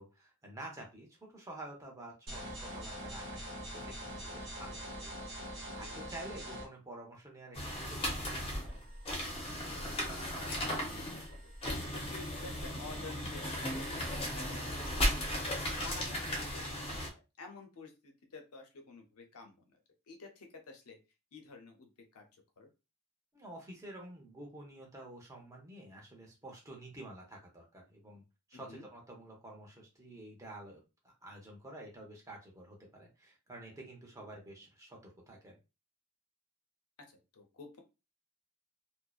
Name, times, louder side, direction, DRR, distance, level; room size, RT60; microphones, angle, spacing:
voice 1, 0.0-8.8 23.3-28.2 28.5-35.6, right 1 dB, 15° right, -1 dB, 0.7 m, -50 dB
sound 1, 2.3-6.7, equal, 55° right, 0.9 m, -43 dB
sound 2, 7.5-17.1, equal, 25° left, 0.6 m, -36 dB
voice 2, 9.7-11.4 11.9-15.5 15.8-19.8 20.1-21.0 21.3-22.2 22.6-22.7 28.5-28.9 37.1-37.8, left 3 dB, 85° left, 3 dB, 0.6 m, -52 dB
2.6 x 2.0 x 2.3 m, 0.29 s
head